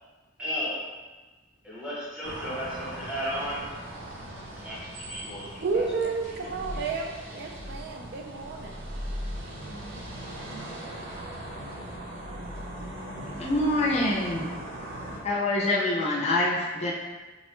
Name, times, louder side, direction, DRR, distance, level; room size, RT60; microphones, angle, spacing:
voice 1, 0.4-0.8 1.6-3.7 4.6-6.8, equal, 5° right, -8 dB, 0.9 m, -35 dB
sound 1, 2.2-15.2, right 1 dB, 75° right, 0.7 m, -39 dB
voice 2, 5.6-8.7, right 4 dB, 55° right, 2 dB, 0.3 m, -31 dB
voice 3, 13.4-14.5 15.2-16.9, left 1 dB, 35° left, -4 dB, 0.5 m, -25 dB
3.9 x 2.1 x 3.0 m, 1.3 s
head